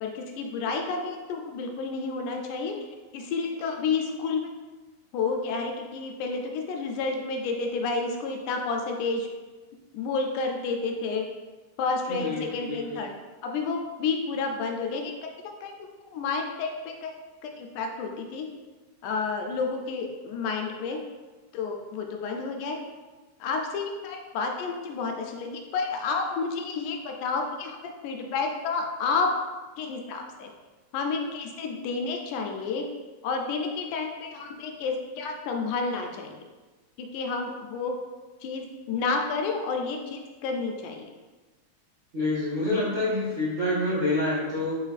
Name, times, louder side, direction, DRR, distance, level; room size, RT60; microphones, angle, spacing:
voice 1, 0.0-2.7 3.1-4.4 5.1-9.3 9.9-11.2 11.8-13.1 13.4-15.1 15.6-15.7 16.1-17.1 17.4-18.5 19.0-21.0 21.5-22.8 23.4-29.3 29.8-30.5 30.9-32.8 33.2-36.4 37.0-37.9 38.4-41.0, left 4 dB, 85° left, 2 dB, 2.1 m, -30 dB
voice 2, 12.1-13.0 42.1-44.8, left 2 dB, 50° right, -11 dB, 0.9 m, -27 dB
4.9 x 3.8 x 2.4 m, 1.2 s
omnidirectional pair, 3.5 m